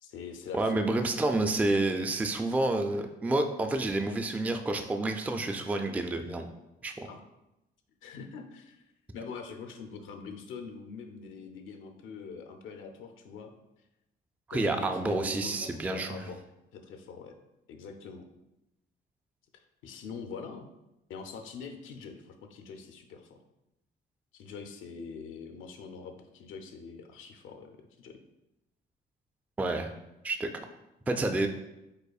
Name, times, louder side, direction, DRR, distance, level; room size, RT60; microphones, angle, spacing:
voice 1, 0.0-1.0 7.0-7.2 8.0-8.8 9.1-13.5 14.5-16.4 16.7-17.3 17.7-18.3 19.5-20.7 21.1-23.4 24.3-28.2, left 5 dB, 80° left, 5 dB, 0.5 m, -43 dB
voice 2, 0.5-6.5 6.8-6.9 14.5-16.2 29.6-29.9 30.2-30.5 31.1-31.5, right 2 dB, 10° right, 5 dB, 0.3 m, -29 dB
5.4 x 3.8 x 2.3 m, 0.93 s
cardioid pair, 90°, 20 cm